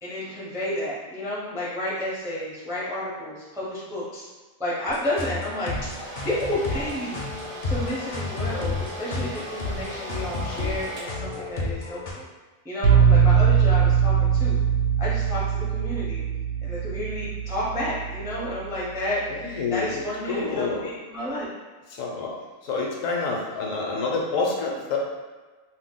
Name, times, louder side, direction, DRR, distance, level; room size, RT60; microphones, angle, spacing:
voice 1, 0.0-4.3 4.6-7.2 7.7-12.3 12.6-14.6 15.0-16.2 16.6-19.2 19.7-21.5, left 1 dB, 5° right, -7 dB, 0.3 m, -31 dB
sound 1, 4.9-12.1, left 3 dB, 55° left, 0.6 m, -32 dB
Domestic sounds home sounds, 5.2-11.8, right 1 dB, 50° right, 0.7 m, -39 dB
sound 2, 12.8-18.6, right 7 dB, 75° right, 1.0 m, -21 dB
voice 2, 19.3-20.8 21.9-22.3 22.6-25.0, left 4 dB, 75° left, -1 dB, 1.0 m, -28 dB
2.6 x 2.2 x 3.6 m, 1.3 s
omnidirectional pair, 1.4 m